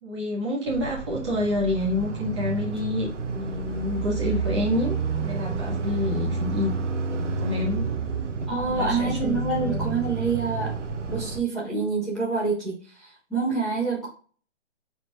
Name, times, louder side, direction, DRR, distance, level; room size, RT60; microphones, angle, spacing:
voice 1, 0.0-4.9 5.2-6.7 7.1-7.8 8.6-9.4 9.6-9.8, left 2 dB, 25° right, -3 dB, 2.0 m, -28 dB
sound 1, 0.7-11.4, right 4 dB, 80° right, 1.2 m, -30 dB
voice 2, 8.5-10.8 11.1-14.1, right 4 dB, ahead, -14 dB, 1.5 m, -27 dB
9.0 x 4.4 x 2.5 m, 0.40 s
hypercardioid pair, 170°, 36 cm